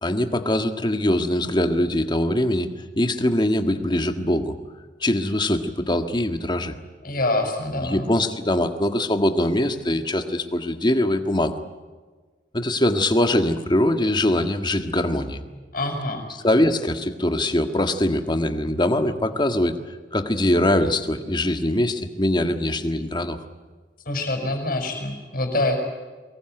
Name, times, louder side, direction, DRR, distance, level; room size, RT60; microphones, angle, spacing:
voice 1, 0.0-2.7 2.9-4.5 5.0-6.7 7.8-11.6 12.5-15.4 16.4-19.7 20.1-23.4, left 1 dB, 25° left, 7 dB, 1.7 m, -22 dB
voice 2, 7.0-8.1 15.7-16.3 24.1-25.8, left 2 dB, 50° left, 5 dB, 6.2 m, -25 dB
24.0 x 21.5 x 9.3 m, 1.4 s
head